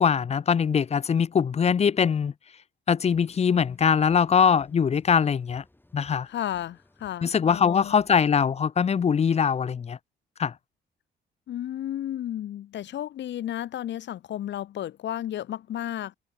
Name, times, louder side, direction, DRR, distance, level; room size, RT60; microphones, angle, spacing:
voice 1, 0.0-2.3 2.9-5.6 5.9-6.3 7.2-10.0 10.4-10.5, left 7 dB, 35° left, 0.5 m, -22 dB
sound 1, 3.0-8.1, left 1 dB, 10° left, 7.4 m, -59 dB
voice 2, 6.3-8.0 11.5-16.1, left 11 dB, 65° left, 0.9 m, -33 dB
cardioid pair, 90°, 20 cm